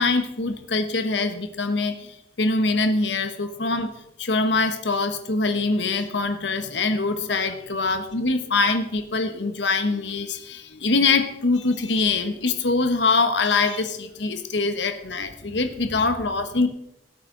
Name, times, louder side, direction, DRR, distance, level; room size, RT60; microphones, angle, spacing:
voice 1, 0.0-3.9 4.2-16.7, left 3 dB, 80° left, 8 dB, 1.2 m, -23 dB
18.0 x 8.3 x 3.9 m, 0.83 s
head